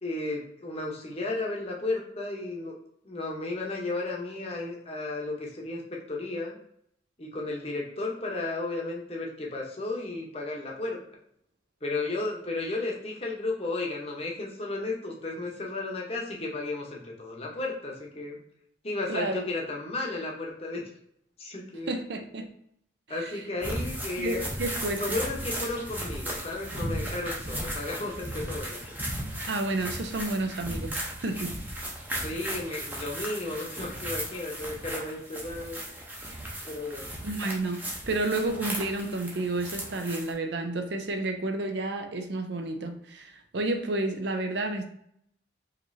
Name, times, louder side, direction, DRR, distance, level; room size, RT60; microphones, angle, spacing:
voice 1, 0.0-2.7 3.0-6.6 7.2-11.0 11.8-18.4 18.8-20.8 21.4-22.0 23.1-24.4 25.0-28.8 32.2-35.8 36.6-37.1, left 2 dB, 30° left, -1 dB, 0.9 m, -33 dB
voice 2, 19.1-19.5 21.9-22.5 23.2-23.4 24.2-25.2 29.5-31.6 37.2-44.8, right 2 dB, 65° right, 6 dB, 0.6 m, -31 dB
sound 1, 23.6-40.3, right 1 dB, 10° right, 0.7 m, -36 dB
5.0 x 3.0 x 2.7 m, 0.72 s
head